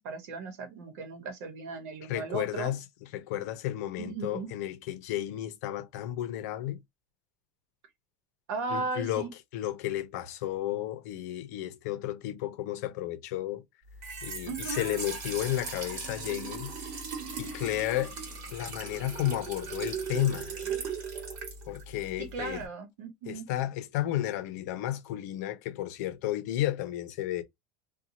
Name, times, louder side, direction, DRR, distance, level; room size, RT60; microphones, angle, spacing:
voice 1, 0.0-2.7 4.0-4.5 8.5-9.3 14.4-15.0 22.2-23.5, right 4 dB, 75° right, 1.0 m, -36 dB
voice 2, 2.1-2.8 3.1-6.8 8.7-9.3 9.5-13.6 14.2-16.7 17.4-18.1 18.5-20.5 21.7-22.6 23.3-27.4, left 13 dB, 75° left, 0.6 m, -32 dB
Trickle dribble / Fill (with liquid), 13.9-22.7, right 5 dB, 50° right, 1.2 m, -38 dB
2.8 x 2.3 x 2.6 m
supercardioid pair, 155°, 9 cm